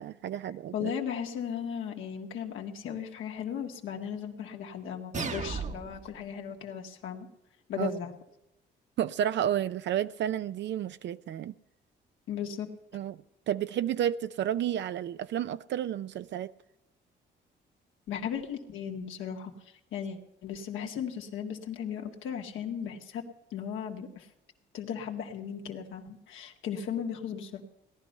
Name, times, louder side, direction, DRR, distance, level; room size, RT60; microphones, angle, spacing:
voice 1, 0.0-0.9 7.8-8.0 9.0-11.5 12.9-13.2 13.5-16.5, right 10 dB, 65° right, 0.5 m, -31 dB
voice 2, 0.7-7.3 7.7-8.1 12.3-12.7 18.1-19.5 19.9-23.2 23.5-24.3 24.7-27.6, left 8 dB, 85° left, 1.9 m, -36 dB
sound 1, 5.1-6.1, right 4 dB, 35° right, 1.0 m, -35 dB
17.5 x 11.5 x 5.5 m
cardioid pair, 90°, 20 cm